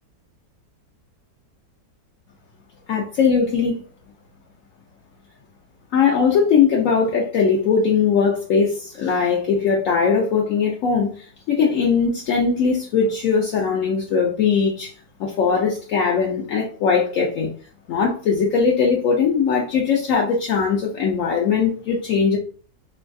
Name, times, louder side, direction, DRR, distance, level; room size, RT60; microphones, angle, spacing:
voice 1, 2.9-3.8 5.9-14.9 15.2-17.5 17.9-22.4, left 5 dB, 80° left, -1 dB, 0.7 m, -20 dB
3.3 x 2.2 x 2.5 m, 0.41 s
omnidirectional pair, 1.9 m